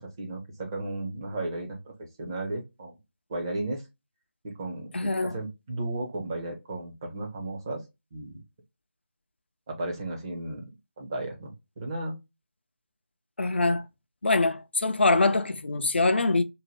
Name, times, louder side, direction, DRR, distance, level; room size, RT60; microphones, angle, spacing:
voice 1, 0.0-1.9 2.2-2.9 3.3-3.8 4.4-7.8 8.1-8.4 9.7-10.6 11.0-12.1, right 2 dB, 20° right, 0.6 m, -34 dB
voice 2, 4.9-5.4 13.4-13.9 14.2-16.4, left 3 dB, 60° left, 0.4 m, -24 dB
2.6 x 2.1 x 3.0 m
figure-of-eight pair, 160°, 7 cm